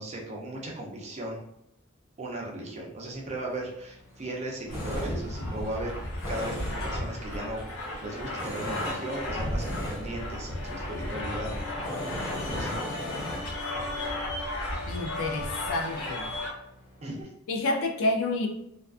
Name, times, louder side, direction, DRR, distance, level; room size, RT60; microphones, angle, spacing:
voice 1, 0.0-1.4 2.2-6.0 6.3-6.6 6.8-7.6 8.0-11.5 12.5-12.8 17.0-17.3, right 1 dB, 30° right, -2 dB, 0.5 m, -36 dB
Tools, 3.1-17.2, left 1 dB, 45° left, 1.0 m, -42 dB
sound 1, 4.7-16.5, left 1 dB, 85° left, 0.8 m, -34 dB
voice 2, 14.9-16.4 17.5-18.5, left 2 dB, 65° left, 3 dB, 0.4 m, -29 dB
2.4 x 2.3 x 2.4 m, 0.76 s
head